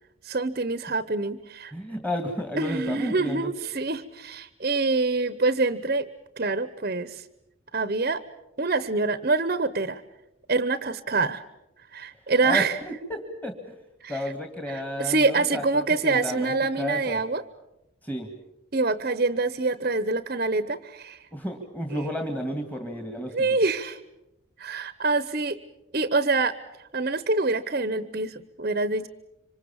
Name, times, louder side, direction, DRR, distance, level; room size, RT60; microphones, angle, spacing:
voice 1, 0.2-1.7 2.6-6.1 6.4-7.2 7.7-8.2 8.6-10.0 10.5-11.4 11.9-12.8 14.0-14.2 14.7-17.4 18.7-21.2 23.3-24.0 24.6-25.6 25.9-26.6 26.9-29.1, right 3 dB, 45° right, 13 dB, 0.9 m, -25 dB
voice 2, 1.7-3.5 12.4-13.7 14.1-17.2 18.0-18.3 21.3-23.5, equal, 10° left, 5 dB, 1.9 m, -32 dB
26.0 x 25.5 x 7.2 m, 0.88 s
head